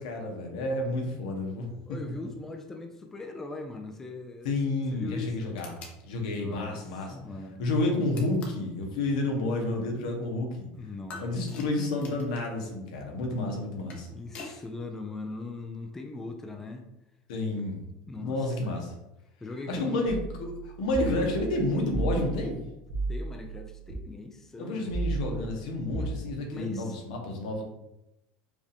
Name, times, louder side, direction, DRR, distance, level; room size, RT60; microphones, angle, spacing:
voice 1, 0.0-1.7 4.4-5.8 6.0-7.1 7.6-10.7 11.2-14.1 14.4-14.6 17.3-17.8 18.2-18.9 19.7-22.6 24.6-27.6, left 2 dB, 90° left, 2 dB, 1.2 m, -30 dB
voice 2, 1.9-4.5 4.9-5.6 6.3-7.6 10.7-11.6 14.1-16.8 17.6-17.7 18.1-18.7 19.4-20.1 21.0-21.3 23.1-25.0 26.0-26.1 26.5-27.0, left 3 dB, 10° left, 4 dB, 0.4 m, -40 dB
sound 1, 5.6-6.0 8.1-8.7 11.1-12.5 13.6-14.6, left 3 dB, 40° left, 0.9 m, -45 dB
sound 2, 20.0-24.0 24.9-26.2, right 3 dB, 75° right, 1.1 m, -34 dB
5.1 x 2.6 x 3.4 m, 0.91 s
supercardioid pair, 150°, 4 cm